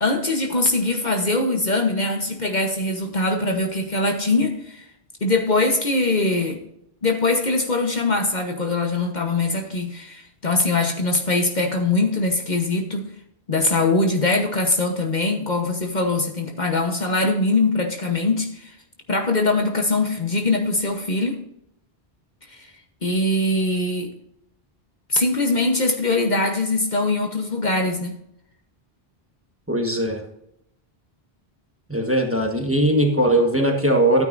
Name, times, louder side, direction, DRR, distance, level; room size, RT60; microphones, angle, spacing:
voice 1, 0.0-4.8 5.2-6.6 7.0-13.1 13.5-18.8 19.1-21.4 22.5-22.7 23.0-24.1 25.1-28.1, left 2 dB, 45° left, 4 dB, 1.2 m, -22 dB
voice 2, 29.7-30.2 31.9-34.2, right 1 dB, 15° right, 2 dB, 1.4 m, -19 dB
13.5 x 9.2 x 2.6 m, 0.78 s
omnidirectional pair, 1.0 m